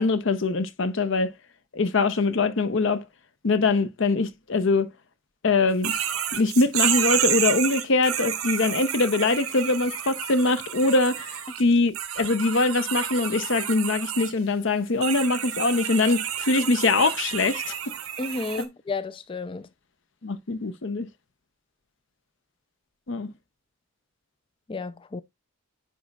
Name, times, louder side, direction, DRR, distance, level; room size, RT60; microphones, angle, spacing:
voice 1, 0.0-1.3 1.7-3.1 3.4-4.9 5.4-5.9 6.3-17.7 20.2-21.1 23.1-23.3, left 3 dB, 60° left, 0.6 m, -23 dB
sound 1, 5.8-11.6 11.9-14.3 15.0-18.6, right 10 dB, 90° right, 0.9 m, -30 dB
voice 2, 18.2-19.7 24.7-25.2, left 3 dB, 25° left, 0.3 m, -32 dB
10.0 x 4.1 x 2.3 m
head